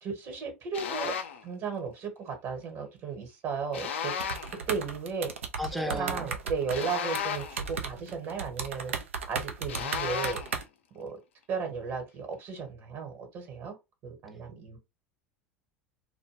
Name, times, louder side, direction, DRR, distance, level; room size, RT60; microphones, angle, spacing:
voice 1, 0.0-1.1 1.4-4.3 4.7-5.3 5.7-8.9 9.3-10.4 10.9-11.2 11.5-13.8 14.0-14.8, right 5 dB, 50° right, 1.1 m, -35 dB
sound 1, 0.7-1.4 3.7-4.6 6.7-7.7 9.7-10.6, left 7 dB, 75° left, 0.5 m, -34 dB
sound 2, 4.2-10.6, right 5 dB, 85° right, 0.4 m, -35 dB
voice 2, 5.6-6.3, left 1 dB, ahead, 0.5 m, -33 dB
2.2 x 2.2 x 3.2 m
hypercardioid pair, 80°, 7 cm